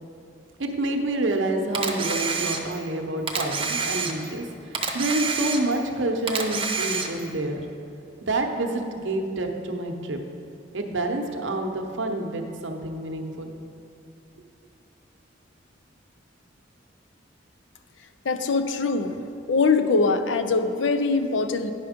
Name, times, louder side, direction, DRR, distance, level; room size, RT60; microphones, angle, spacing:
voice 1, 0.6-7.6 8.2-10.2 10.7-13.6, right 2 dB, 70° right, 4 dB, 0.8 m, -28 dB
Camera, 1.7-2.9 3.3-4.4 4.7-5.9 6.3-7.3, right 5 dB, 30° right, 0.7 m, -28 dB
voice 2, 18.2-19.2 19.5-21.7, left 4 dB, 70° left, 9 dB, 0.5 m, -22 dB
9.7 x 5.7 x 5.1 m, 2.7 s
head